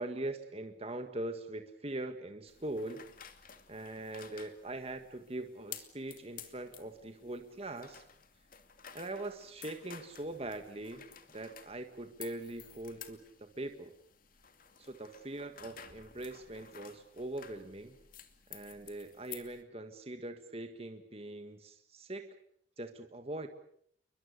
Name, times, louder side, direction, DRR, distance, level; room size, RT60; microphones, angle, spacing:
voice 1, 0.0-3.0 3.7-8.0 8.9-11.1 11.3-13.9 14.8-18.0 18.5-22.4 22.8-23.5, right 2 dB, 30° right, 7 dB, 1.7 m, -42 dB
sound 1, 2.5-19.6, left 8 dB, 45° left, 2.6 m, -53 dB
30.0 x 23.0 x 6.8 m, 0.66 s
head